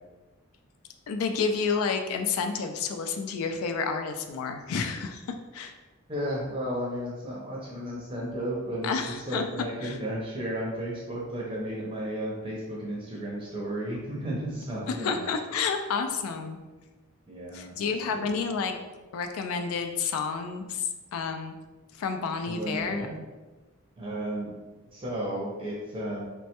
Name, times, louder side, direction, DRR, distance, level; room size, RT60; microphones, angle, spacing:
voice 1, 1.1-5.7 8.8-9.4 9.8-10.0 14.9-16.6 17.5-18.8 19.1-21.5 21.9-23.1, left 5 dB, 75° left, 6 dB, 0.3 m, -30 dB
voice 2, 6.1-15.3 17.3-18.5 22.5-23.2 24.0-24.5 24.9-26.2, right 1 dB, 25° right, -4 dB, 0.5 m, -34 dB
3.1 x 2.1 x 2.9 m, 1.2 s
head